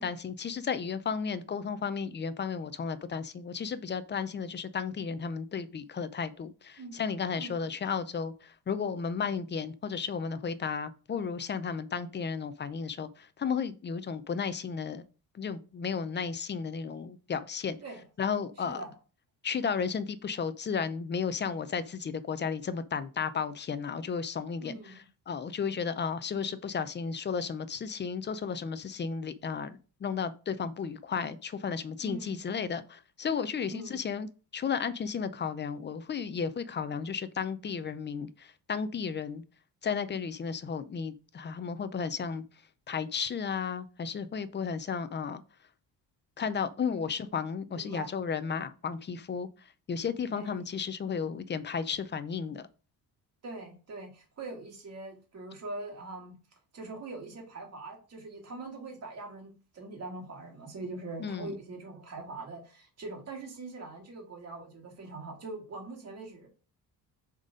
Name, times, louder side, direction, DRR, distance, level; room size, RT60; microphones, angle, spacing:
voice 1, 0.0-15.0 15.3-17.8 18.2-18.8 19.4-34.3 34.5-39.4 39.8-42.4 42.9-45.4 46.4-49.5 49.9-52.6 61.2-61.5, left 6 dB, 25° left, 0.5 m, -33 dB
voice 2, 7.3-7.8 17.8-18.0 18.6-18.9 24.6-25.0 32.0-32.4 33.7-34.1 47.0-47.1 47.7-48.1 50.3-50.6 53.4-56.4 56.7-66.5, right 2 dB, 40° right, 2.1 m, -42 dB
7.1 x 4.1 x 5.1 m
cardioid pair, 155°, 40 cm